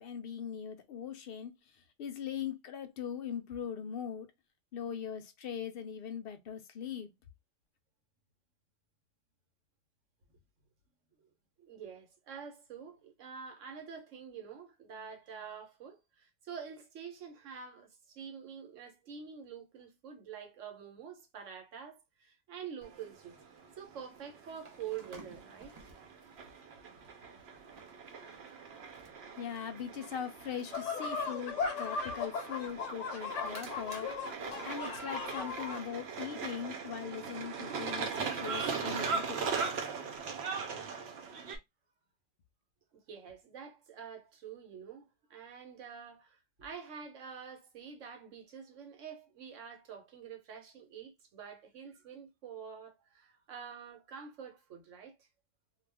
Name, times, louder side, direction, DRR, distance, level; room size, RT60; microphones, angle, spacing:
voice 1, 0.0-4.3 4.7-7.1 29.4-34.3 34.6-39.6, left 8 dB, 60° left, 0.7 m, -41 dB
voice 2, 11.6-23.4 23.8-25.9 30.0-30.1 42.9-55.3, right 7 dB, 90° right, 1.2 m, -47 dB
sound 1, 22.8-41.6, right 5 dB, 65° right, 0.9 m, -40 dB
sound 2, 24.1-26.5 26.9-31.5 32.5-34.7, right 3 dB, 40° right, 0.6 m, -58 dB
sound 3, 30.7-35.8, left 4 dB, 80° left, 1.0 m, -37 dB
2.3 x 2.3 x 3.3 m
omnidirectional pair, 1.2 m